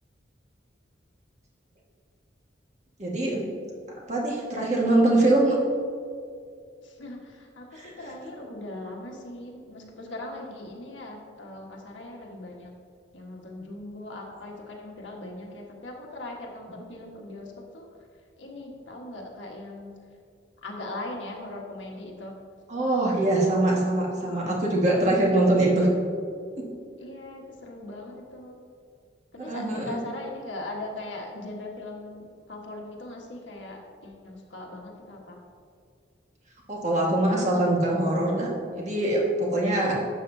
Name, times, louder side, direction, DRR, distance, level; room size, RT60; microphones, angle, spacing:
voice 1, 3.0-3.4 4.1-5.6 7.7-7.9 22.7-25.9 29.4-30.0 36.7-39.9, right 1 dB, 35° right, -3 dB, 1.7 m, -23 dB
voice 2, 6.8-12.7 13.1-17.9 18.4-19.9 20.6-22.3 22.9-23.0 24.2-24.5 27.0-28.6 29.3-35.4, left 2 dB, 80° left, -1 dB, 1.4 m, -40 dB
12.0 x 7.7 x 2.7 m, 2.3 s
head